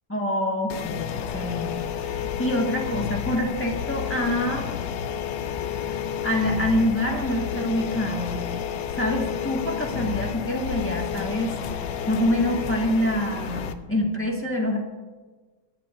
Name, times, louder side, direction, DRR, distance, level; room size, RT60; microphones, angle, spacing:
voice 1, 0.1-4.7 5.6-8.4 8.9-11.5 12.1-14.8, left 1 dB, 10° left, -2 dB, 1.3 m, -26 dB
sound 1, 0.7-13.7, left 8 dB, 80° left, 1.3 m, -30 dB
22.5 x 9.3 x 2.5 m, 1.4 s
omnidirectional pair, 1.9 m